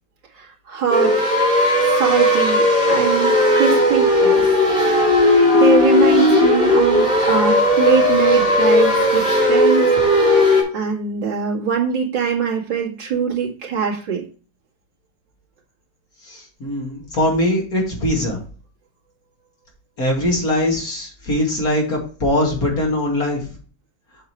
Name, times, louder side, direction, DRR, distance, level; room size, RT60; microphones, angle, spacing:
voice 1, 0.4-1.2 1.8-4.6 5.5-9.9 10.7-14.2, right 6 dB, 65° right, -3 dB, 2.7 m, -22 dB
sound 1, 0.9-10.6, left 1 dB, 25° left, 3.1 m, -16 dB
voice 2, 16.2-18.4 20.0-23.5, left 1 dB, 50° left, -1 dB, 2.6 m, -21 dB
7.9 x 6.5 x 3.0 m, 0.39 s
omnidirectional pair, 2.1 m